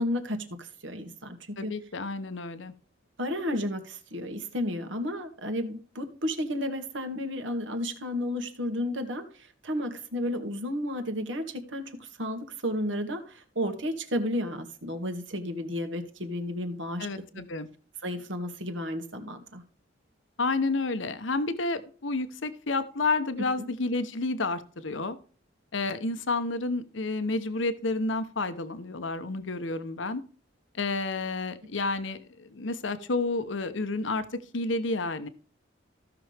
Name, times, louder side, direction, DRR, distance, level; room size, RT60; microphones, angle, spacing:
voice 1, 0.0-1.8 3.2-17.1 18.0-19.6 23.6-23.7, left 1 dB, 75° right, 7 dB, 2.0 m, -32 dB
voice 2, 1.6-2.7 17.0-17.7 20.4-25.2 25.7-30.2 30.7-34.3 34.5-35.3, left 3 dB, 75° left, 11 dB, 0.9 m, -30 dB
15.5 x 6.2 x 3.4 m, 0.41 s
head